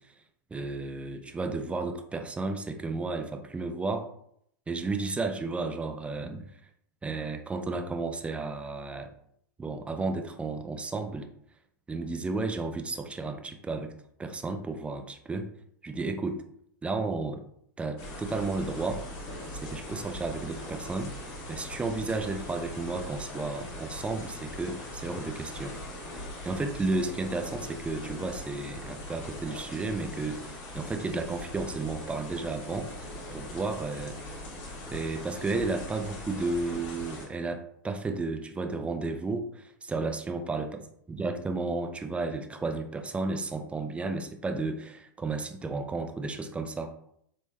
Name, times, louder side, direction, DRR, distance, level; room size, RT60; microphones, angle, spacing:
voice 1, 0.5-4.1 4.7-6.5 7.0-9.1 9.6-11.3 11.9-13.9 14.2-15.5 15.8-16.4 16.8-17.4 17.8-19.0 19.6-21.1 21.5-25.7 26.1-34.2 34.9-40.8 41.1-46.9, right 3 dB, 10° right, 6 dB, 0.4 m, -33 dB
sound 1, 18.0-37.3, left 1 dB, 45° left, 1.2 m, -41 dB
4.0 x 3.1 x 2.2 m, 0.69 s
figure-of-eight pair, 90°, 11 cm